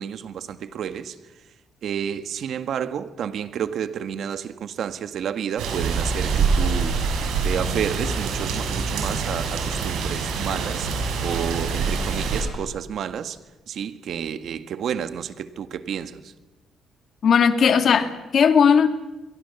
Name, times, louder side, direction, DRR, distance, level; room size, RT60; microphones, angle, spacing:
voice 1, 0.0-1.4 1.8-7.1 7.4-13.4 13.7-16.3, right 8 dB, 65° right, 1.8 m, -30 dB
sound 1, 5.6-12.4, right 5 dB, 90° right, 6.6 m, -25 dB
voice 2, 17.2-18.9, left 6 dB, 55° left, 2.4 m, -17 dB
28.0 x 23.0 x 7.2 m
cardioid pair, 90°, 0 cm